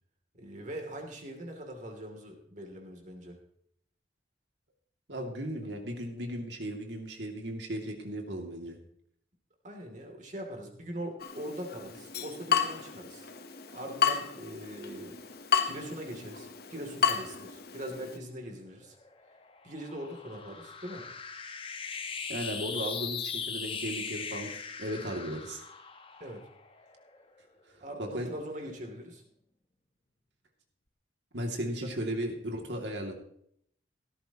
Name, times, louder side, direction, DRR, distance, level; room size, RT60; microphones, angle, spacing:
voice 1, 0.3-3.4 5.6-5.7 9.6-13.3 13.7-18.9 19.6-21.1 26.2-26.4 27.8-29.2 31.8-31.9, right 1 dB, 40° right, 2 dB, 2.9 m, -42 dB
voice 2, 5.1-8.8 22.3-24.5 24.8-25.6 28.0-28.3 31.3-33.1, right 1 dB, 70° right, 2 dB, 2.5 m, -36 dB
Water tap faucet / Drip, 11.2-18.2, left 7 dB, 55° left, 1.1 m, -32 dB
sound 1, 18.8-27.5, left 6 dB, 30° left, 1.0 m, -40 dB
16.5 x 13.5 x 3.0 m, 0.69 s
head